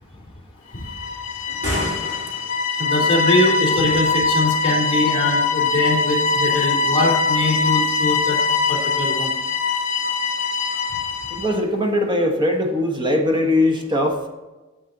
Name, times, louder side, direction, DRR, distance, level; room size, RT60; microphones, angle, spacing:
sound 1, 0.8-11.6, left 4 dB, 60° left, 1.3 m, -22 dB
sound 2, 1.5-2.8, equal, 55° right, 3.4 m, -29 dB
voice 1, 2.8-8.4 8.7-9.3, left 2 dB, 25° left, -4 dB, 2.7 m, -22 dB
voice 2, 11.3-14.2, left 1 dB, 20° right, 2 dB, 1.2 m, -20 dB
9.7 x 7.2 x 3.9 m, 1.1 s
head